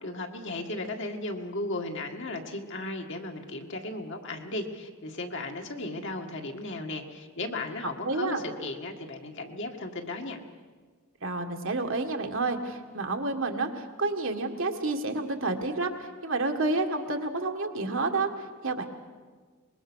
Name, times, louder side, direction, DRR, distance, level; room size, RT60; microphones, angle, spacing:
voice 1, 0.0-10.4, left 2 dB, 55° left, 3 dB, 1.9 m, -35 dB
voice 2, 8.0-8.4 11.2-18.8, right 3 dB, 60° right, 4 dB, 1.8 m, -30 dB
24.5 x 21.5 x 6.4 m, 1.5 s
head